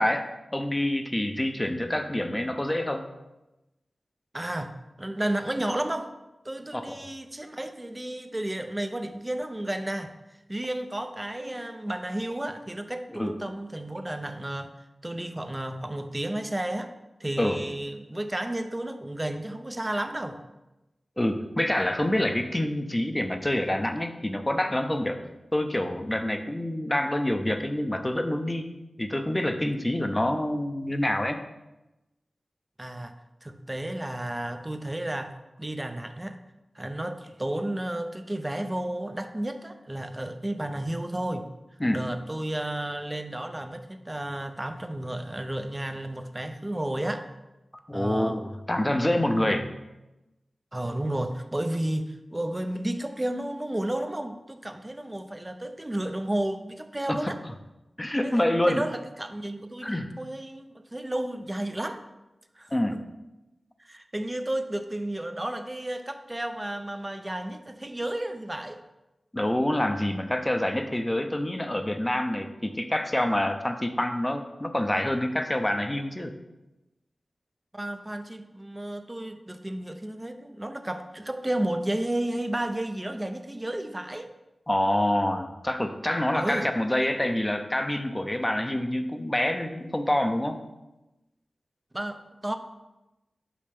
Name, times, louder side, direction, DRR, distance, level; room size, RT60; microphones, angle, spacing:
voice 1, 0.0-3.1 6.7-7.0 13.1-13.3 17.4-17.6 21.2-25.2 25.5-28.7 29.0-31.4 41.8-42.0 47.9-49.7 57.1-57.2 58.0-58.8 59.8-60.1 62.7-63.0 69.3-76.3 84.7-90.6, left 1 dB, 20° left, 7 dB, 0.7 m, -27 dB
voice 2, 4.3-6.1 6.4-10.1 10.5-14.7 15.0-16.9 17.2-20.4 32.8-33.1 33.4-36.4 36.7-41.5 41.9-47.3 47.9-48.4 49.4-49.7 50.7-57.4 58.2-62.0 62.6-63.0 63.8-68.8 77.7-84.3 86.3-86.7 91.9-92.5, right 1 dB, 20° right, 7 dB, 0.6 m, -32 dB
8.5 x 5.4 x 3.5 m, 0.99 s
wide cardioid pair, 70°, 0 cm